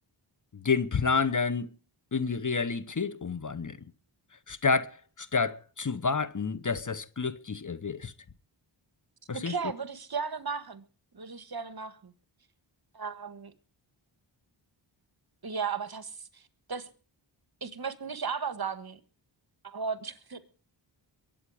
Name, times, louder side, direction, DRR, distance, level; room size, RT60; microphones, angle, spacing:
voice 1, 0.5-1.7 2.1-3.8 4.5-8.1 9.3-9.5, left 5 dB, 40° left, 1.0 m, -29 dB
voice 2, 9.3-10.8 11.1-12.1 12.9-13.5 15.4-16.4 16.7-16.9 17.6-19.0 19.6-20.5, right 5 dB, 50° right, 1.6 m, -35 dB
22.5 x 8.9 x 5.0 m
cardioid pair, 55°, 47 cm